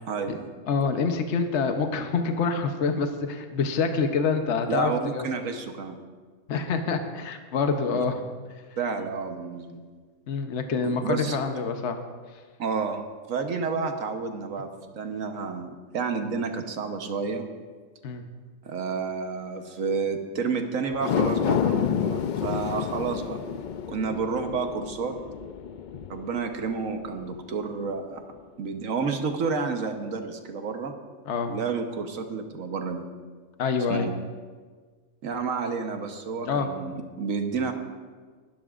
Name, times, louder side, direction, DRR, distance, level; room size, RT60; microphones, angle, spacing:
voice 1, 0.1-0.5 4.7-6.0 7.9-8.0 8.8-9.8 10.8-11.4 12.6-13.0 13.3-17.5 18.6-23.4 23.9-25.1 26.1-28.2 28.6-30.9 31.5-33.1 33.9-34.1 35.2-37.7, right 5 dB, 75° right, 5 dB, 1.5 m, -30 dB
voice 2, 0.7-5.3 6.5-8.2 10.3-12.0 18.0-18.2 31.3-31.5 33.6-34.1 36.5-36.7, left 5 dB, 60° left, 6 dB, 1.1 m, -26 dB
sound 1, 20.9-27.4 27.9-28.0, left 7 dB, 85° left, 0.4 m, -29 dB
22.0 x 12.0 x 2.5 m, 1.5 s
omnidirectional pair, 1.4 m